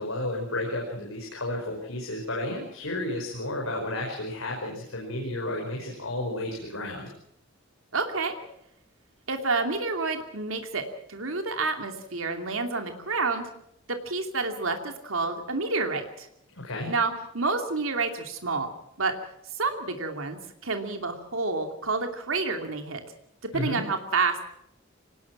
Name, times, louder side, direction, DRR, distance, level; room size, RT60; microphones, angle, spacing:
voice 1, 0.0-7.1 16.5-16.9 23.5-23.8, left 1 dB, 85° left, 0 dB, 5.1 m, -32 dB
voice 2, 7.9-8.4 9.3-10.8 11.1-13.5 13.9-16.3 16.9-18.7 19.0-19.1 19.5-23.0 23.5-24.4, right 3 dB, 80° right, 5 dB, 2.8 m, -29 dB
25.0 x 19.5 x 6.0 m, 0.76 s
head